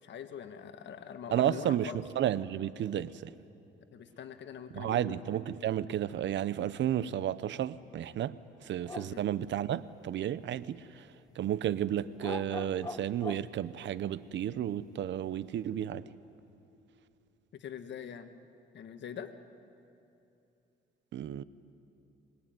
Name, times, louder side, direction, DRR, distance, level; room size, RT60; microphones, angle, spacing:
voice 1, 0.0-2.0 3.9-5.2 9.0-9.2 17.5-18.4 18.7-19.3, left 8 dB, 65° left, 1.6 m, -43 dB
voice 2, 1.3-1.9 2.2-3.1 4.7-8.3 8.7-10.8 11.4-16.0 21.1-21.4, right 11 dB, 65° right, 0.8 m, -32 dB
sound 1, 8.8-9.3 9.5-9.6 12.0-13.5, left 3 dB, 20° left, 1.1 m, -41 dB
23.5 x 21.5 x 9.3 m
cardioid pair, 90°, 20 cm